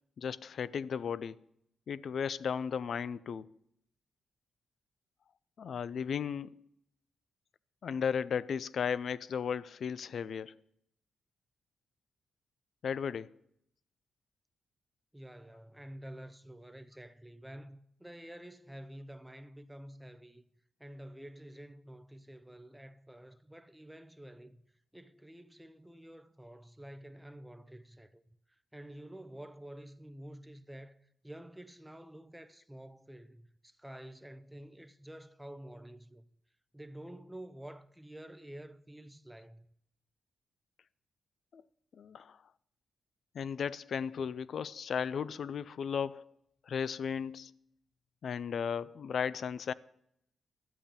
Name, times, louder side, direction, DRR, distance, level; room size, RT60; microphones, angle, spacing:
voice 1, 0.2-1.4 1.9-3.5 5.6-6.6 7.8-10.5 12.8-13.3 41.5-41.6 41.9-42.4 43.3-46.3 46.7-47.5 48.2-49.7, left 7 dB, 60° left, 0.4 m, -35 dB
voice 2, 15.1-20.4 20.8-24.6 24.9-28.2 28.5-31.0 31.2-36.3 36.7-39.7, right 1 dB, 5° right, 0.6 m, -49 dB
12.5 x 8.8 x 5.3 m
cardioid pair, 125°, 0 cm